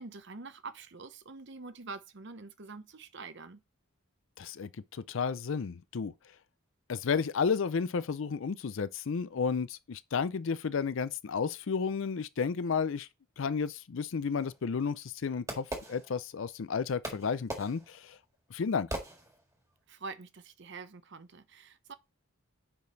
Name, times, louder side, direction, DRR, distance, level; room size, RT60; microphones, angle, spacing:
voice 1, 0.0-3.6 19.9-21.9, right 4 dB, 55° right, 0.8 m, -45 dB
voice 2, 4.4-6.1 6.9-13.1 13.4-18.2 18.5-18.9, left 5 dB, 65° left, 0.4 m, -32 dB
Fireworks, 14.4-16.6 17.0-19.7, right 1 dB, 15° right, 1.7 m, -42 dB
6.9 x 5.2 x 3.9 m
head